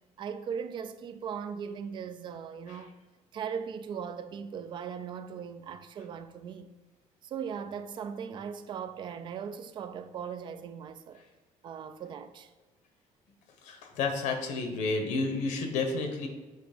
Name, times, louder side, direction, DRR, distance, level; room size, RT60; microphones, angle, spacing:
voice 1, 0.2-2.9 3.3-6.7 7.2-11.2 11.6-12.5, right 7 dB, 40° right, 0.4 m, -38 dB
voice 2, 13.6-16.3, left 3 dB, 85° left, 1.0 m, -31 dB
8.0 x 3.0 x 5.1 m
cardioid pair, 160°, 12 cm